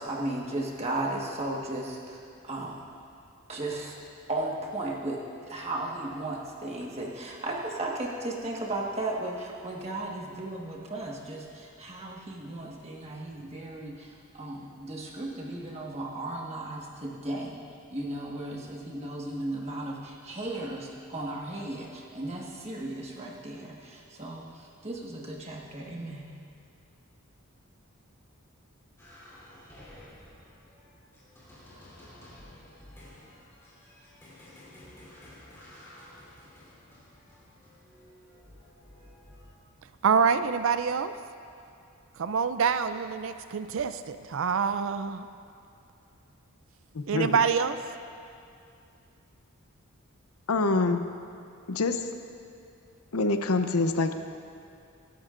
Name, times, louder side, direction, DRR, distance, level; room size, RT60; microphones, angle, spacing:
voice 1, 0.0-2.2 2.4-2.8 3.5-3.9 4.3-17.6 17.9-24.4 24.8-26.3, right 2 dB, 30° right, -2 dB, 1.5 m, -35 dB
sound 1, 29.0-39.5, left 1 dB, 10° left, 3.3 m, -52 dB
voice 2, 40.0-41.1 42.2-45.3 47.1-47.8, right 6 dB, 60° right, 11 dB, 0.4 m, -26 dB
voice 3, 46.9-47.4 50.5-51.0 51.7-52.1 53.1-54.1, left 3 dB, 80° left, 7 dB, 0.7 m, -26 dB
22.5 x 11.5 x 2.5 m, 2.5 s
head